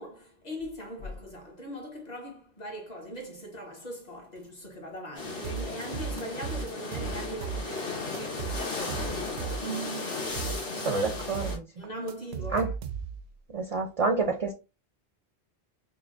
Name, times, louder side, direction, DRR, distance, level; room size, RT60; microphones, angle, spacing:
voice 1, 0.0-9.4 9.6-11.1 11.8-12.7, right 1 dB, 40° left, 1.1 m, -40 dB
sound 1, 5.1-11.6, left 3 dB, 75° left, 1.8 m, -35 dB
sound 2, 5.4-7.8 8.1-9.8 10.1-13.3, right 7 dB, 90° right, 0.9 m, -36 dB
voice 2, 10.8-11.7 12.5-12.7 13.5-14.5, right 3 dB, 45° right, 0.5 m, -28 dB
5.4 x 2.2 x 2.5 m
omnidirectional pair, 1.1 m